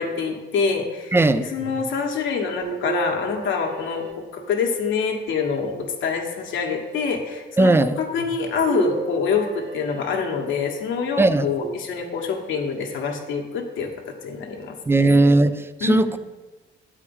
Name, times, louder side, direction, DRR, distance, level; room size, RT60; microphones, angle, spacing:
voice 1, 0.0-4.0 4.3-15.2 15.8-16.1, left 5 dB, 75° left, 2 dB, 1.4 m, -26 dB
voice 2, 1.1-1.5 7.6-7.9 11.2-11.5 14.9-16.2, right 2 dB, 10° right, 13 dB, 0.4 m, -17 dB
sound 1, 2.6-4.9 5.6-6.6 8.6-10.7 11.6-12.5 13.1-13.2 14.6-14.7, right 6 dB, 55° right, 1.5 m, -33 dB
8.3 x 5.0 x 7.1 m, 1.3 s
cardioid pair, 90°, 20 cm